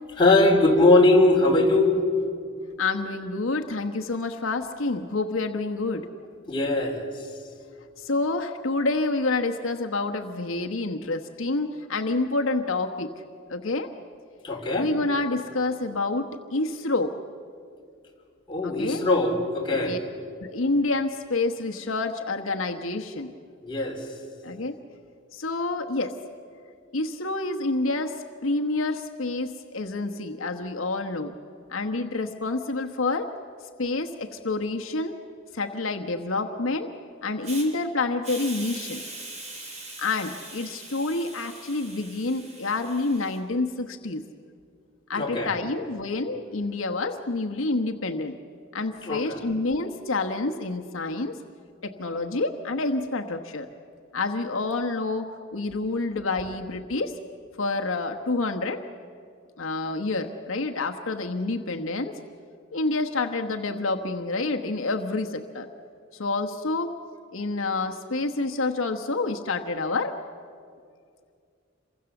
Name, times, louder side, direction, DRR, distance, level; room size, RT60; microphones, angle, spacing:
voice 1, 0.2-2.0 6.5-7.1 14.4-14.9 18.5-20.0 23.6-24.0 45.1-45.5 49.0-49.4, left 2 dB, 25° left, -1 dB, 3.7 m, -21 dB
voice 2, 2.8-6.1 8.0-13.1 13.5-13.9 14.8-17.1 18.6-19.0 19.7-20.0 20.4-23.3 24.4-24.8 25.3-26.2 26.9-28.2 28.4-31.4 31.7-33.3 33.8-35.1 35.5-36.9 37.2-39.0 40.0-44.2 45.1-48.4 48.7-51.4 51.8-53.7 54.1-55.3 55.5-57.1 57.6-58.8 59.6-62.1 62.7-65.7 66.2-66.9 67.3-70.1, left 3 dB, 85° left, 4 dB, 1.2 m, -28 dB
Hiss, 37.4-37.6 38.2-43.4, right 2 dB, 35° right, 4.4 m, -41 dB
28.0 x 23.5 x 7.1 m, 2.3 s
head